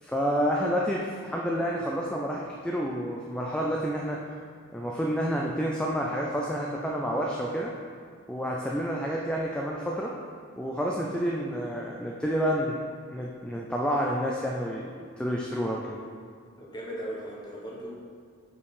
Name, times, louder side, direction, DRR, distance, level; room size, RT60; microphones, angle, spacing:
voice 1, 0.0-4.2 4.7-7.7 8.3-10.1 10.6-12.8 13.1-16.0, equal, 5° left, -2 dB, 0.3 m, -29 dB
voice 2, 16.6-17.9, right 1 dB, 20° left, -4 dB, 1.2 m, -37 dB
5.3 x 5.1 x 4.8 m, 2.1 s
head